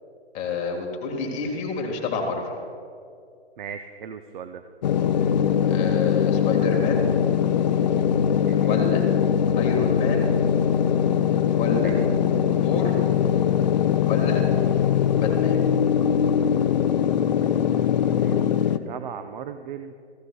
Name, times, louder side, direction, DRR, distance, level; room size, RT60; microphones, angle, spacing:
voice 1, 0.3-2.4 5.7-7.0 8.7-9.1 9.5-10.3 11.6-12.0 12.6-13.0 14.0-14.4 15.2-15.6, left 4 dB, 20° left, 1 dB, 1.5 m, -28 dB
voice 2, 3.6-4.6 8.5-8.8 11.8-11.9 17.4-19.9, right 8 dB, 45° right, 9 dB, 0.6 m, -38 dB
sound 1, 4.8-18.8, left 8 dB, 40° left, 0.4 m, -21 dB
17.5 x 15.0 x 2.2 m, 2.3 s
hypercardioid pair, 140°, 33 cm